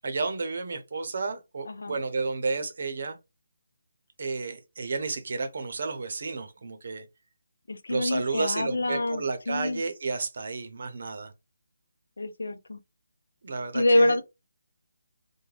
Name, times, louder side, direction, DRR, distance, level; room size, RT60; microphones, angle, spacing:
voice 1, 0.0-3.2 4.2-7.0 7.9-11.3 13.4-14.2, right 4 dB, 50° right, 0.7 m, -32 dB
voice 2, 1.6-2.0 7.7-9.8 12.2-12.8 13.7-14.2, left 2 dB, 85° left, 0.5 m, -26 dB
3.2 x 2.2 x 2.4 m
hypercardioid pair, 175°, 0 cm